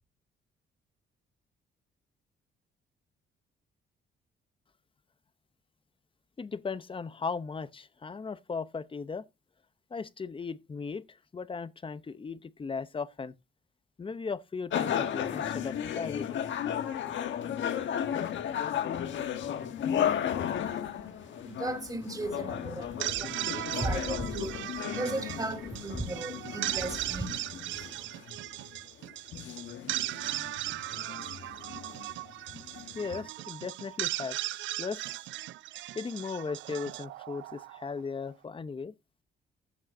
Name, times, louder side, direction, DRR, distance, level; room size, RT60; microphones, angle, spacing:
voice 1, 6.4-9.2 9.9-13.3 14.0-16.4 33.0-35.0 35.9-38.9, left 5 dB, 25° left, 0.8 m, -37 dB
sound 1, 14.7-33.3, left 9 dB, 70° left, 1.4 m, -34 dB
voice 2, 20.6-28.1, right 2 dB, 20° right, 3.3 m, -37 dB
sound 2, 22.8-38.1, right 15 dB, 70° right, 0.4 m, -37 dB
14.5 x 7.5 x 2.7 m
cardioid pair, 90°, 20 cm